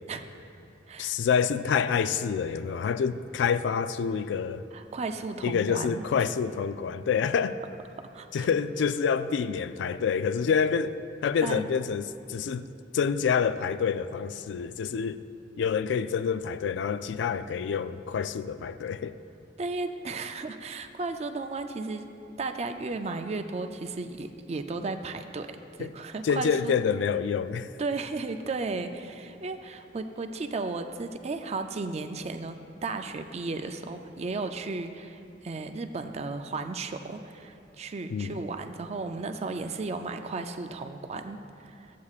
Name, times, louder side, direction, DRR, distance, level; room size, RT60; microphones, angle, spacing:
voice 1, 1.0-4.6 5.4-7.6 8.3-11.0 11.2-15.2 15.6-19.2 25.8-25.9 26.2-27.7 38.1-38.3, left 6 dB, 85° left, 0.3 m, -27 dB
voice 2, 4.7-6.0 8.1-8.5 11.4-11.6 19.6-22.1 22.4-26.8 27.8-32.6 32.8-41.9, right 3 dB, 40° right, 0.4 m, -34 dB
13.5 x 8.3 x 2.4 m
head